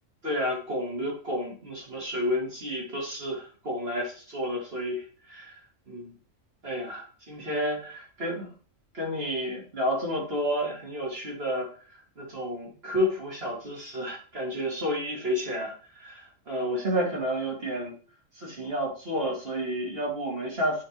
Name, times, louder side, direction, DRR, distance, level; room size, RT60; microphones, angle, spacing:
voice 1, 0.2-5.5 5.9-6.1 6.6-8.5 8.9-17.9 18.4-20.8, equal, 50° right, -3 dB, 2.5 m, -31 dB
8.5 x 4.4 x 3.2 m, 0.39 s
omnidirectional pair, 1.4 m